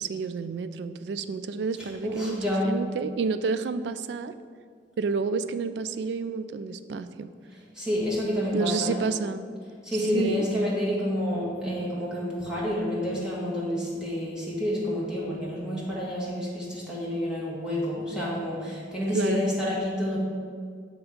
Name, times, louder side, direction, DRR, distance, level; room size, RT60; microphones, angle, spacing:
voice 1, 0.0-4.3 5.0-7.3 8.5-9.5 10.1-10.5 19.1-19.4, right 4 dB, 70° right, 12 dB, 0.3 m, -30 dB
voice 2, 1.8-2.8 7.7-9.0 9.8-20.2, left 1 dB, 5° right, -7 dB, 1.4 m, -29 dB
7.1 x 3.5 x 5.1 m, 2.1 s
head